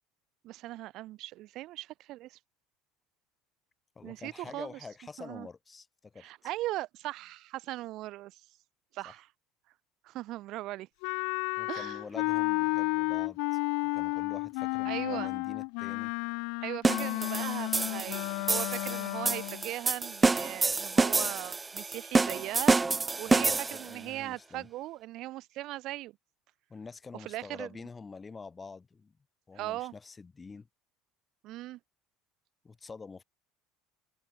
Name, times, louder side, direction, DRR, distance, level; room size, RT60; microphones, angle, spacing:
voice 1, 0.4-2.4 4.0-4.7 5.2-5.5 6.2-8.4 8.9-9.3 10.0-10.9 11.7-12.0 14.8-15.3 16.6-22.8 23.2-26.1 27.2-27.7 29.5-29.9 31.4-31.8, right 16 dB, 50° right, 6.7 m, -39 dB
voice 2, 4.0-6.3 9.1-9.2 11.6-13.6 13.9-16.1 23.3-24.7 26.7-29.1 29.5-30.7 32.6-33.2, left 4 dB, 15° left, 5.2 m, -46 dB
Wind instrument woodwind instrument, 11.0-19.6, left 37 dB, 70° left, 1.6 m, -32 dB
sound 1, 16.8-23.9, right 3 dB, 15° right, 2.8 m, -28 dB
cardioid pair, 145°, 0 cm